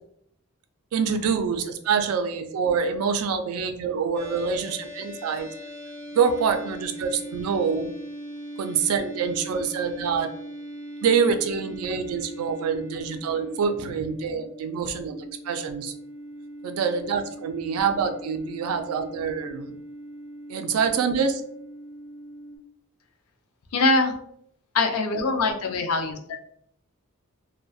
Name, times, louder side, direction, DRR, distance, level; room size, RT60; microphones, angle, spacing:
voice 1, 0.9-5.5 6.1-7.9 8.6-10.3 11.0-15.9 16.6-19.8 20.5-21.4, right 6 dB, 80° right, 7 dB, 0.3 m, -26 dB
sound 1, 4.1-22.6, right 1 dB, 5° left, 0.3 m, -40 dB
voice 2, 23.7-24.1 24.7-26.4, left 3 dB, 85° left, 5 dB, 0.4 m, -23 dB
2.3 x 2.1 x 2.6 m, 0.70 s
head